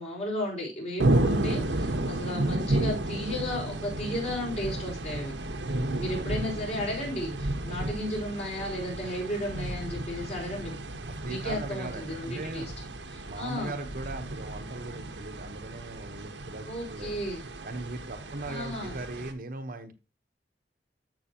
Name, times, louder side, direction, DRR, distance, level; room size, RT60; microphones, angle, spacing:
voice 1, 0.0-5.3 6.0-10.8 11.2-12.7 13.1-13.7 16.7-17.4 18.5-19.0, left 1 dB, 40° left, -2 dB, 5.3 m, -34 dB
sound 1, 1.0-19.3, right 1 dB, 85° right, 1.3 m, -32 dB
voice 2, 5.7-6.3 11.2-12.7 13.2-17.1 17.6-19.9, right 2 dB, 55° right, 6 dB, 1.2 m, -38 dB
13.5 x 6.0 x 3.0 m, 0.28 s
head